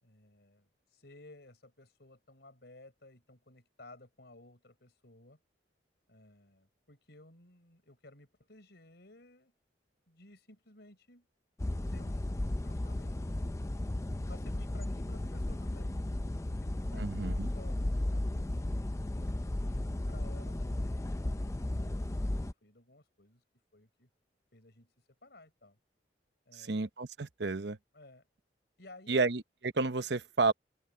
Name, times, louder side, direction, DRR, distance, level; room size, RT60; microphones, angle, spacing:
voice 1, 0.0-5.4 6.1-9.5 10.1-11.3 11.9-13.6 14.2-17.0 17.3-18.6 19.1-23.4 23.7-24.1 24.5-24.9 25.2-25.8 26.5-26.8 27.9-28.3 28.8-29.3, left 2 dB, 65° left, 5.4 m, -57 dB
sound 1, 11.6-22.5, left 1 dB, 15° left, 0.4 m, -34 dB
voice 2, 16.9-17.5 26.6-27.8 29.1-30.5, right 3 dB, 75° right, 0.9 m, -31 dB
head